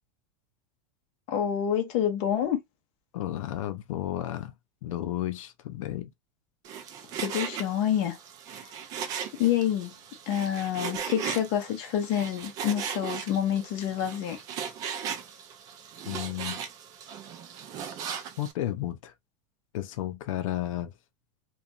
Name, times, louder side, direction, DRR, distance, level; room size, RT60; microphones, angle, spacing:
voice 1, 1.3-2.6 7.2-8.2 9.4-9.9 10.3-14.4, left 10 dB, 35° left, 0.7 m, -27 dB
voice 2, 3.1-4.5 4.8-6.1 16.0-16.6 18.4-19.1 19.7-20.9, left 13 dB, 80° left, 0.5 m, -32 dB
Frying (food), 6.6-18.5, right 8 dB, 20° right, 0.3 m, -38 dB
2.8 x 2.3 x 2.5 m
supercardioid pair, 175°, 17 cm